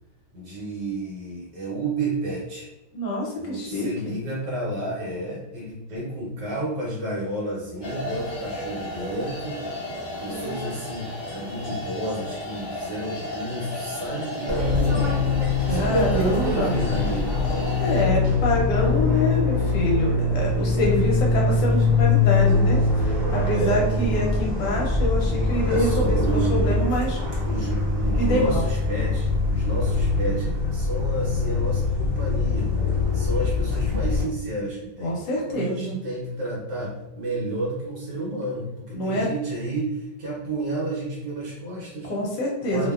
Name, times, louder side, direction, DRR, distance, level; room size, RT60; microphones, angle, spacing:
voice 1, 0.3-2.7 3.4-9.6 10.2-15.2 15.7-17.4 23.5-24.2 25.4-26.8 27.4-32.7 33.1-35.2 35.5-42.1 42.6-42.9, right 1 dB, 70° right, -5 dB, 1.2 m, -31 dB
voice 2, 2.9-4.1 15.6-16.8 17.8-27.2 28.1-28.7 35.0-36.0 38.9-39.3 42.0-42.9, equal, 75° left, -2 dB, 1.2 m, -26 dB
sound 1, 7.8-18.0, left 1 dB, 55° left, 0.6 m, -34 dB
Fixed-wing aircraft airplane, 14.5-34.2, left 3 dB, 45° right, 0.9 m, -23 dB
3.0 x 2.1 x 2.3 m, 0.99 s
omnidirectional pair, 2.0 m